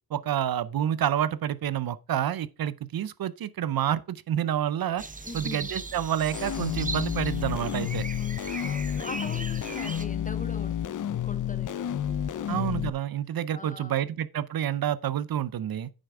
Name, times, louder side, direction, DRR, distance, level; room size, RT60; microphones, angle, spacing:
voice 1, 0.1-5.0 5.3-8.1 12.5-15.9, right 10 dB, 65° right, 0.6 m, -28 dB
sound 1, 5.0-10.0, right 3 dB, 20° right, 0.8 m, -38 dB
voice 2, 5.2-5.7 8.2-12.7 13.5-14.1, left 3 dB, 20° left, 1.2 m, -42 dB
sound 2, 6.3-12.9, left 10 dB, 55° left, 0.6 m, -30 dB
9.0 x 6.9 x 3.6 m
wide cardioid pair, 115°, 38 cm